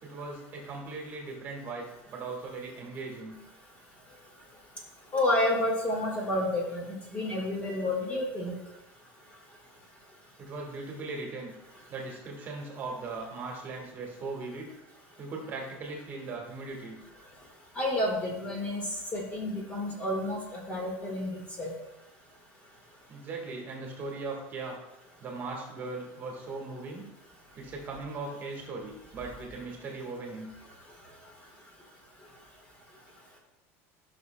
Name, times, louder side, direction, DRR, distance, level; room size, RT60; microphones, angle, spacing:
voice 1, 0.0-3.3 10.4-11.5 11.9-14.7 15.2-17.0 23.1-24.8 25.2-27.1 27.5-30.5, right 3 dB, 30° right, 1 dB, 1.4 m, -39 dB
voice 2, 5.1-8.5 17.7-18.8 19.1-21.3 21.6-21.7, left 1 dB, 20° left, 0 dB, 1.6 m, -30 dB
13.5 x 6.1 x 2.2 m, 0.89 s
cardioid pair, 165°, 7 cm